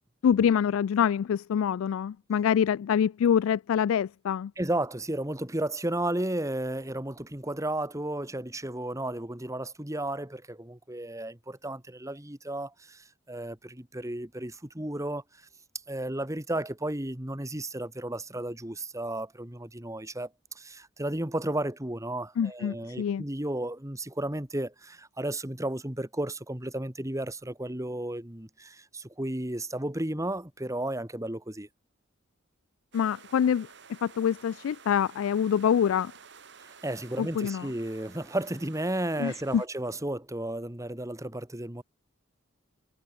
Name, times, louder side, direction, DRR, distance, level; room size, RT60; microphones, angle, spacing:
voice 1, 0.2-4.5 22.4-23.2 32.9-33.7 34.0-36.1 37.2-37.7 39.2-39.6, left 8 dB, 85° left, 0.3 m, -25 dB
voice 2, 4.6-15.2 15.9-20.3 20.6-31.7 36.6-41.8, right 1 dB, 15° right, 2.0 m, -33 dB
sound 1, 32.9-39.7, right 6 dB, 60° right, 4.7 m, -52 dB
head